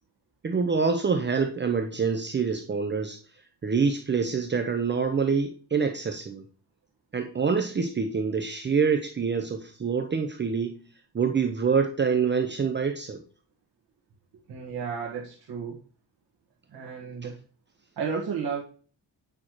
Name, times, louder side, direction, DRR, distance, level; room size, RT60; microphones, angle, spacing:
voice 1, 0.4-3.2 3.6-6.4 7.1-10.8 11.1-13.2, right 5 dB, 25° right, 6 dB, 0.8 m, -26 dB
voice 2, 14.5-15.8 16.7-17.4 18.0-18.6, right 6 dB, 60° right, -2 dB, 1.9 m, -32 dB
8.8 x 5.7 x 3.1 m, 0.40 s
cardioid pair, 100°, 40 cm